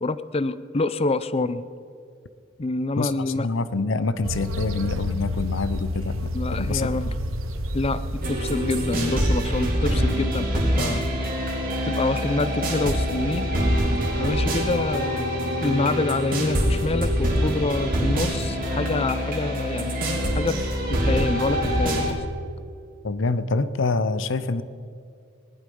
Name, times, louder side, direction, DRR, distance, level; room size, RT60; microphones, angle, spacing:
voice 1, 0.0-1.6 2.6-3.5 6.3-7.1 7.7-11.1 11.8-13.5 14.0-15.3 15.6-19.9 20.3-20.6 20.9-22.2, left 2 dB, 30° left, 14 dB, 0.6 m, -26 dB
voice 2, 3.0-6.3 6.6-6.9 23.0-24.6, left 3 dB, 65° left, 14 dB, 0.7 m, -26 dB
sound 1, 4.2-9.7, left 1 dB, 85° right, 1.1 m, -30 dB
sound 2, 8.2-22.1, equal, 45° right, 2.8 m, -25 dB
19.0 x 11.5 x 5.4 m, 2.5 s
head